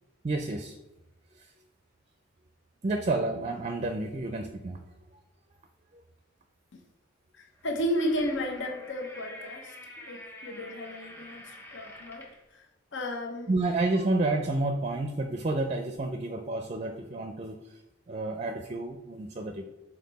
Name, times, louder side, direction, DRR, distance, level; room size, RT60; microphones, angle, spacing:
voice 1, 0.2-0.8 1.3-1.5 2.8-4.8 5.1-5.2 13.5-17.8 18.1-19.6, right 2 dB, 35° right, 6 dB, 0.5 m, -30 dB
voice 2, 7.3-13.5, equal, 65° left, 3 dB, 0.8 m, -34 dB
sound 1, 7.6-12.4, left 1 dB, 10° left, 1.2 m, -47 dB
6.5 x 4.2 x 4.1 m, 0.98 s
head